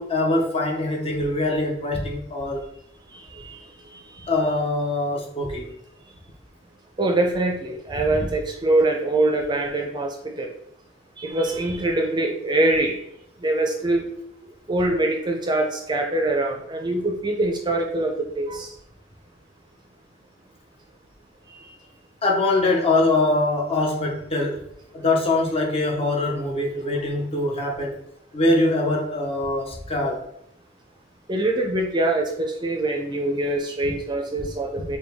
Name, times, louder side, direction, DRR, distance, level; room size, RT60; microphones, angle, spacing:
voice 1, 0.0-2.6 4.3-5.7 8.1-8.3 22.2-24.6 24.9-28.0 28.3-30.2, left 2 dB, 35° left, 0 dB, 0.8 m, -23 dB
voice 2, 3.1-4.5 7.0-10.5 11.2-13.0 13.4-14.1 14.7-18.7 21.5-21.7 31.3-35.0, right 2 dB, 25° right, 2 dB, 0.5 m, -24 dB
5.0 x 2.2 x 3.5 m, 0.75 s
head